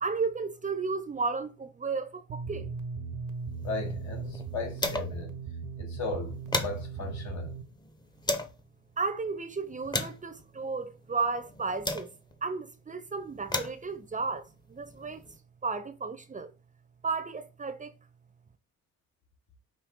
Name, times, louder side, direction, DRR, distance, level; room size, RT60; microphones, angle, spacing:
voice 1, 0.0-2.7 9.0-12.1 12.4-15.3 15.6-16.5 17.0-17.9, right 4 dB, 25° right, 0.6 m, -33 dB
sound 1, 2.3-7.6, right 4 dB, 80° right, 0.8 m, -38 dB
sound 2, 3.5-5.3 5.6-5.7 6.1-8.6 9.2-12.4 13.2-15.4, left 1 dB, 15° left, 0.8 m, -37 dB
voice 2, 3.6-5.4 5.8-7.5 15.0-15.1, left 3 dB, 70° left, 1.8 m, -36 dB
5.4 x 2.6 x 3.6 m
cardioid pair, 90°, 30 cm